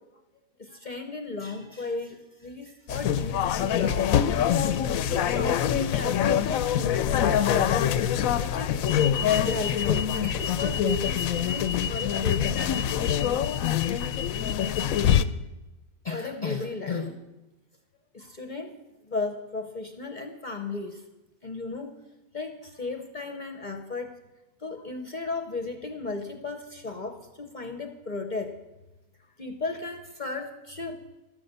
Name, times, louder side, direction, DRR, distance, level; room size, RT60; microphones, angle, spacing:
voice 1, 0.6-4.1 5.0-8.1 8.4-12.8 16.0-17.2 18.1-18.7 19.0-21.1 21.4-21.9 22.3-24.1 24.6-28.6 29.4-31.0, left 3 dB, 40° left, 6 dB, 0.8 m, -35 dB
sound 1, 2.9-15.3, left 9 dB, 70° left, 1.0 m, -25 dB
12.5 x 11.5 x 6.7 m, 1.1 s
omnidirectional pair, 1.6 m